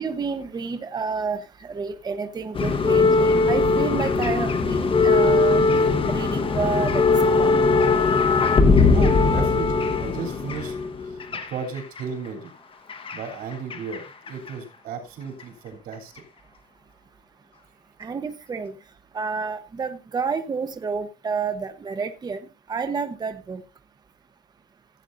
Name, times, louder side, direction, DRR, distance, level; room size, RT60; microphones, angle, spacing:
voice 1, 0.0-5.6 6.1-7.1 7.3-7.5 18.0-18.7 19.1-22.4 22.7-23.6, right 5 dB, 25° right, 8 dB, 0.8 m, -29 dB
sound 1, 2.5-12.0 12.9-14.0 14.3-14.5 15.4-15.5, left 3 dB, 35° left, 1.2 m, -20 dB
voice 2, 8.9-10.7 11.1-12.5 13.1-16.1, right 5 dB, 90° right, 2 dB, 3.4 m, -34 dB
16.0 x 8.9 x 2.6 m, 0.26 s
cardioid pair, 140°, 15 cm